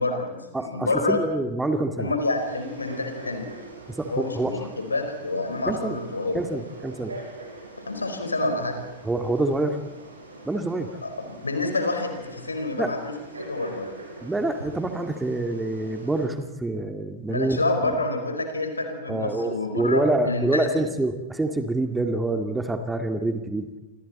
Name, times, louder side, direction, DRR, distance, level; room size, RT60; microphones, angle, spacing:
voice 1, 0.0-1.2 2.0-3.5 4.1-6.4 7.9-8.8 11.0-13.9 17.3-20.7, left 2 dB, 80° left, 5 dB, 4.7 m, -28 dB
voice 2, 0.5-2.1 3.9-4.5 5.7-6.0 6.3-7.2 9.0-9.8 10.4-10.9 12.8-13.0 14.2-17.6 17.8-18.0 19.1-23.7, right 2 dB, 10° right, 6 dB, 2.2 m, -26 dB
Frog, 2.3-16.3, right 2 dB, 75° right, 6.0 m, -43 dB
29.0 x 25.5 x 4.3 m, 1.1 s
figure-of-eight pair, 90°, 0 cm